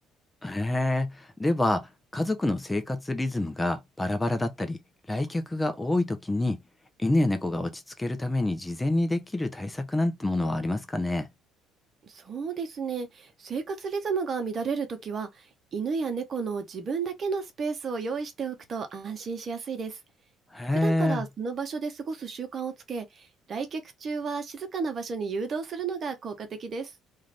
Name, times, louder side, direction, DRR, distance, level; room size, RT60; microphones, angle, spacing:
voice 1, 0.4-4.8 5.1-6.6 7.0-11.3 20.5-21.2, left 2 dB, 15° left, 0.7 m, -27 dB
voice 2, 12.0-20.0 20.7-26.9, right 5 dB, 45° right, 0.9 m, -32 dB
2.5 x 2.5 x 3.3 m
supercardioid pair, 70°, 0 cm